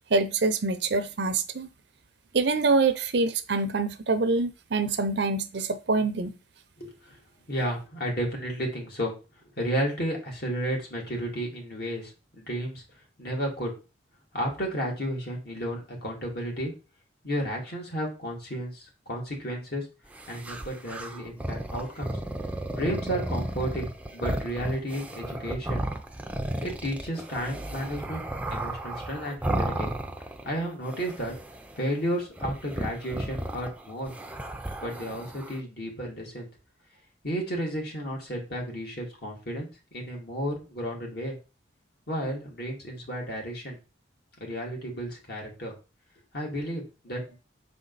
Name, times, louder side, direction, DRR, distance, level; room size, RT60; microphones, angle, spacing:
voice 1, 0.1-1.7 2.3-6.3, right 3 dB, 65° right, 0.6 m, -25 dB
voice 2, 6.8-7.2 7.5-9.1 9.6-12.8 13.2-13.7 14.3-16.7 17.2-19.9 20.3-22.1 22.7-25.9 26.6-28.2 28.5-29.9 30.4-31.4 31.8-34.1 34.8-36.5 37.2-41.4 42.1-43.8 44.4-45.7 46.3-47.4, equal, 55° left, 2.3 m, -32 dB
sound 1, 20.1-30.6 30.8-31.8 32.4-35.6, right 1 dB, 5° right, 0.6 m, -34 dB
5.6 x 4.3 x 4.0 m
head